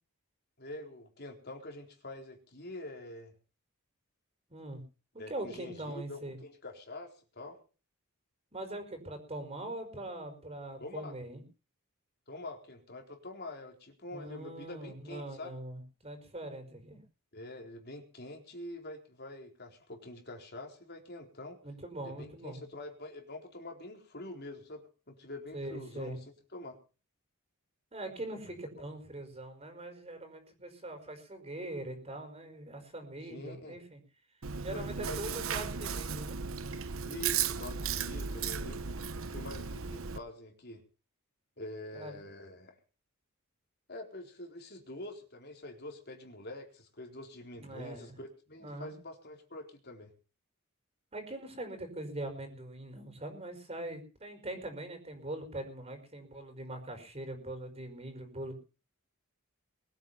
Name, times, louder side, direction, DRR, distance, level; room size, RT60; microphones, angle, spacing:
voice 1, 0.6-3.3 5.2-7.6 10.8-11.2 12.3-15.5 17.3-21.6 22.0-26.2 26.5-26.8 28.5-28.6 33.2-33.8 34.7-35.5 37.0-38.8 39.3-40.8 41.6-42.8 43.9-50.1, left 1 dB, 50° left, 3 dB, 4.2 m, -46 dB
voice 2, 4.5-4.8 5.1-6.4 8.5-11.4 14.1-17.0 21.6-22.6 25.5-26.2 27.9-34.0 34.6-36.4 41.9-42.2 47.5-48.2 48.6-48.9 51.1-58.5, right 1 dB, 30° right, 6 dB, 5.0 m, -42 dB
Chewing mastication, 34.4-40.2, right 6 dB, 70° right, 1.0 m, -35 dB
22.5 x 9.2 x 5.8 m, 0.37 s
head